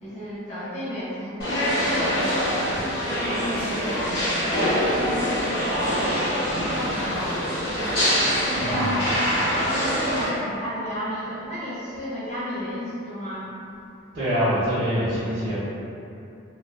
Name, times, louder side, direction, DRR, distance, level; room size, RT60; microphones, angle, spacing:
voice 1, 0.0-2.8 3.2-7.7 8.4-13.5, equal, 35° left, -10 dB, 0.6 m, -33 dB
sound 1, 1.4-10.2, equal, 55° left, 0.9 m, -24 dB
voice 2, 8.4-9.0 14.1-15.6, equal, 50° right, -13 dB, 0.6 m, -25 dB
2.4 x 2.2 x 2.3 m, 2.7 s
head